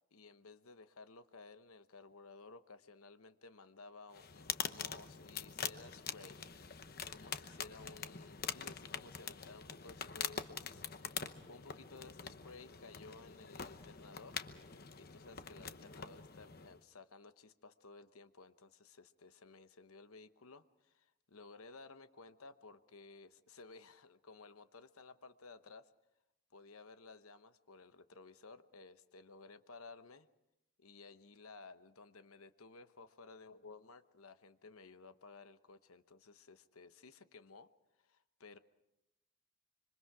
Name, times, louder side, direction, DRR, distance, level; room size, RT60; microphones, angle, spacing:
voice 1, 0.1-6.4 7.1-11.2 11.5-14.4 15.0-25.9 26.5-30.3 30.8-37.7 38.0-38.6, left 3 dB, 75° left, 11 dB, 1.0 m, -56 dB
sound 1, 4.1-16.8, left 7 dB, 45° left, 1.0 m, -45 dB
26.5 x 25.0 x 4.9 m, 0.88 s
head